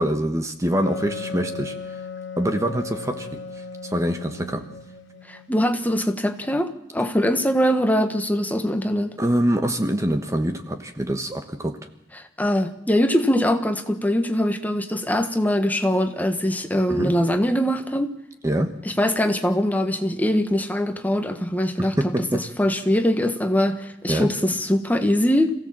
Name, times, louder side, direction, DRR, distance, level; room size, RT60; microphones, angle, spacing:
voice 1, 0.0-1.7 2.4-3.3 3.8-4.6 9.2-11.8 16.9-17.1 18.4-18.7 21.8-22.4 24.1-24.3, right 1 dB, 15° right, 7 dB, 1.3 m, -24 dB
Wind instrument woodwind instrument, 0.8-6.2, left 4 dB, 85° left, 2.1 m, -36 dB
voice 2, 5.3-9.1 12.2-18.1 18.8-25.5, equal, 10° left, 7 dB, 1.5 m, -22 dB
27.0 x 16.5 x 7.6 m, 0.85 s
head